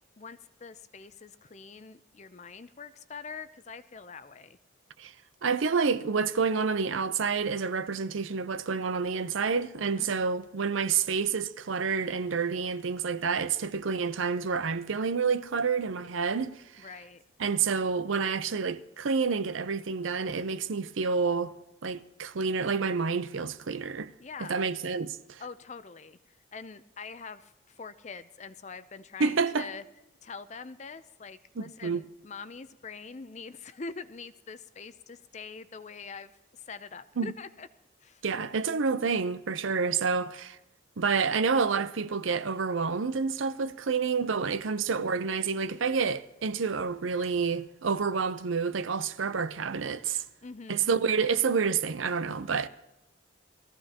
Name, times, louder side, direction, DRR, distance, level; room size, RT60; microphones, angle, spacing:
voice 1, 0.2-4.6 10.0-10.2 16.8-17.2 24.2-24.7 25.4-29.8 30.2-37.7 38.0-38.2 44.8-44.9 50.4-51.0, left 5 dB, 35° left, 0.5 m, -44 dB
voice 2, 5.4-16.9 17.4-21.5 21.8-24.1 24.4-25.4 29.2-29.7 31.6-32.0 37.2-37.3 38.2-40.6 41.0-50.2 50.7-52.7, right 5 dB, 85° right, 0.6 m, -29 dB
20.5 x 14.5 x 2.9 m
head